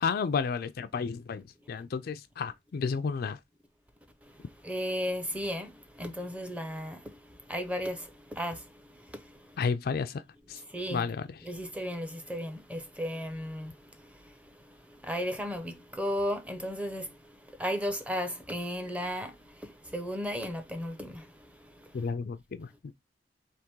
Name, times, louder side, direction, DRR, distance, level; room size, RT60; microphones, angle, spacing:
voice 1, 0.0-3.4 9.6-10.2 10.5-10.6 10.9-11.4 21.9-22.9, left 5 dB, 55° left, 0.4 m, -32 dB
voice 2, 4.6-5.7 6.0-7.0 7.5-8.0 8.3-8.6 10.7-11.1 11.4-13.7 15.1-17.1 17.6-19.3 19.9-21.2, equal, 10° right, 0.7 m, -34 dB
3.5 x 3.0 x 4.5 m
head